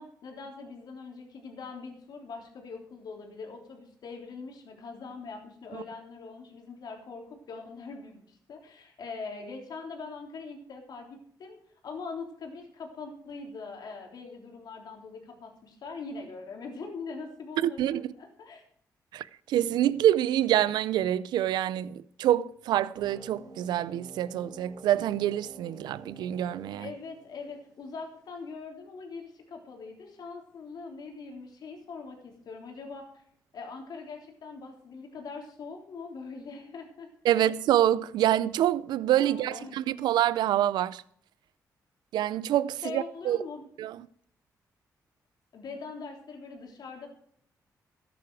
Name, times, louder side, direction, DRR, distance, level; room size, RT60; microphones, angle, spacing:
voice 1, 0.0-11.6 11.8-18.6 26.8-33.2 33.5-37.4 39.2-40.0 42.8-43.7 45.5-47.1, left 4 dB, 70° left, 3.5 m, -42 dB
voice 2, 17.6-18.0 19.1-26.9 37.2-41.0 42.1-43.4 43.8-44.0, right 12 dB, 85° right, 0.4 m, -26 dB
sound 1, 22.9-27.9, right 2 dB, 60° right, 3.5 m, -49 dB
13.5 x 9.7 x 4.7 m
cardioid pair, 70°, 7 cm